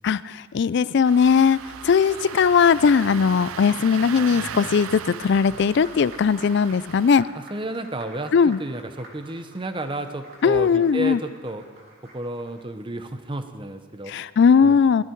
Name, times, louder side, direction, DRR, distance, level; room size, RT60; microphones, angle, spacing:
voice 1, 0.0-1.6 1.8-7.3 8.3-8.6 10.4-11.2 14.1-15.0, left 6 dB, 50° left, 18 dB, 0.3 m, -19 dB
Engine starting, 1.0-7.1, right 8 dB, 75° right, 0.4 m, -37 dB
Applause, 1.5-12.6, right 1 dB, 50° right, 3.1 m, -48 dB
voice 2, 7.3-11.6 12.1-14.1 14.6-14.8, right 1 dB, 25° right, 8 dB, 0.8 m, -32 dB
19.5 x 13.5 x 4.6 m, 1.5 s
head